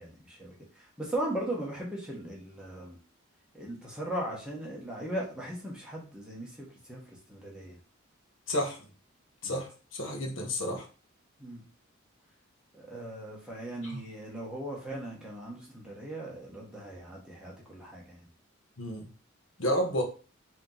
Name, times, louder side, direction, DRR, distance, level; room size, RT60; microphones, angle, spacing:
voice 1, 0.0-3.0 3.5-7.8 9.4-9.5 11.4-11.6 12.7-18.3, right 1 dB, 5° right, -4 dB, 1.1 m, -38 dB
voice 2, 8.5-8.8 9.4-10.9 13.8-14.0 18.8-19.0 19.6-20.0, equal, 70° left, 2 dB, 1.0 m, -31 dB
3.6 x 3.0 x 3.9 m, 0.35 s
head